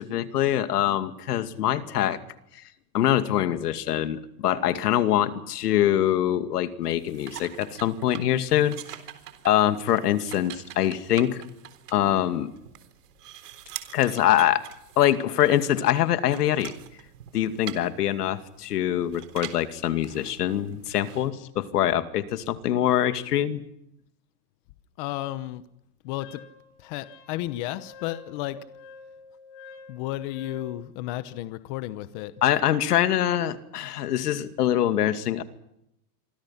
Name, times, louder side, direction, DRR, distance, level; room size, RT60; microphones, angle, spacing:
voice 1, 0.0-2.2 2.9-8.8 9.4-11.4 11.9-12.5 13.9-14.6 15.0-16.7 17.3-23.6 32.4-35.4, left 11 dB, 75° left, 10 dB, 2.5 m, -24 dB
sound 1, 6.8-21.3, right 11 dB, 75° right, 3.8 m, -44 dB
voice 2, 25.0-25.6 26.0-26.4 26.8-28.6 29.9-32.3, left 15 dB, 30° left, 13 dB, 1.0 m, -33 dB
Wind instrument woodwind instrument, 26.2-30.8, left 4 dB, 45° left, 6.8 m, -47 dB
27.5 x 24.5 x 5.9 m, 0.80 s
supercardioid pair, 165°, 47 cm